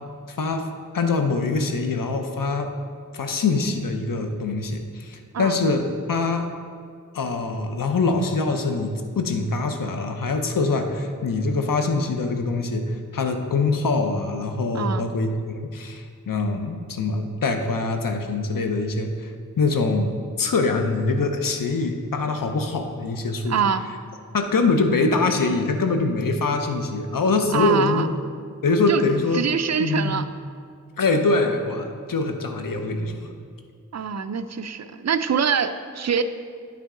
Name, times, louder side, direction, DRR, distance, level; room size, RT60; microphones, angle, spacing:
voice 1, 0.3-0.7 0.9-2.7 3.1-5.8 6.1-6.5 7.1-23.6 24.3-28.1 28.6-29.5 29.8-30.3 31.0-33.3, left 3 dB, 80° left, 5 dB, 0.7 m, -24 dB
voice 2, 14.7-15.1 23.5-23.9 27.5-28.1 28.9-29.1 29.3-30.2 33.9-36.2, right 7 dB, 55° right, 10 dB, 0.5 m, -24 dB
10.5 x 5.7 x 3.8 m, 2.2 s
wide cardioid pair, 75°, 33 cm